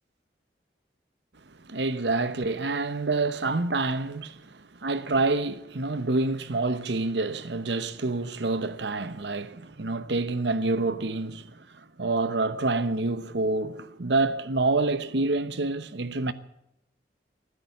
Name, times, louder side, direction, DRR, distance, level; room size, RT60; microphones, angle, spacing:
voice 1, 1.6-11.6 12.0-16.3, right 3 dB, 80° right, 1.0 m, -27 dB
20.0 x 10.0 x 7.2 m
head